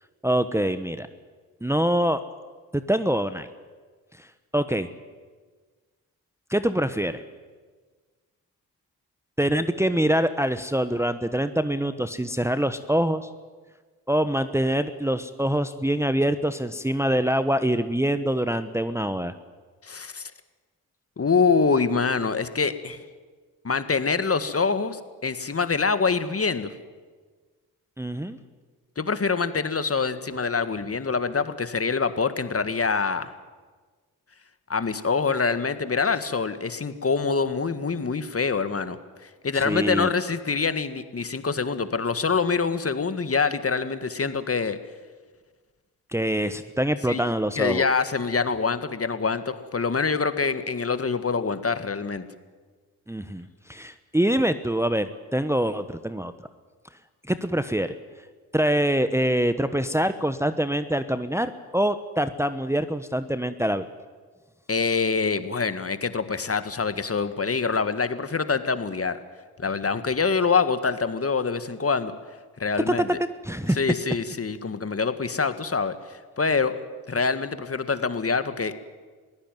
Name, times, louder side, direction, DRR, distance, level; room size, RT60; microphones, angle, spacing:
voice 1, 0.2-1.1 1.6-2.2 2.7-3.5 4.2-4.3 4.5-4.9 6.5-7.2 9.4-13.3 14.1-19.3 28.0-28.4 39.5-40.1 46.1-47.8 53.1-56.3 57.3-57.9 58.5-63.9 72.9-73.2 73.4-73.8, right 1 dB, 5° right, 11 dB, 1.1 m, -25 dB
voice 2, 19.8-20.3 21.2-23.0 23.6-26.7 29.0-33.3 34.7-39.0 39.2-44.8 47.1-52.3 64.7-69.2 69.6-72.1 72.6-73.1 73.8-76.7 77.1-78.9, left 5 dB, 35° left, 11 dB, 1.8 m, -25 dB
22.0 x 16.0 x 9.2 m, 1.4 s
hypercardioid pair, 45°, 42 cm